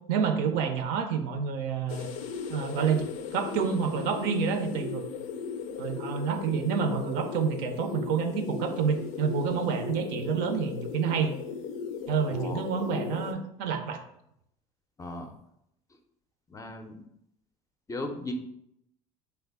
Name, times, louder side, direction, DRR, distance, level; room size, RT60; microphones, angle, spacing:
voice 1, 0.1-2.1 2.5-5.1 5.8-11.3 12.1-14.0, right 6 dB, 70° right, 7 dB, 0.5 m, -28 dB
sound 1, 1.9-13.3, left 6 dB, 85° left, 0.4 m, -37 dB
voice 2, 15.0-15.3 15.9-16.0 16.5-17.0 17.9-18.3, left 2 dB, 20° left, 5 dB, 0.4 m, -37 dB
3.3 x 2.2 x 3.4 m, 0.76 s
hypercardioid pair, 85°, 17 cm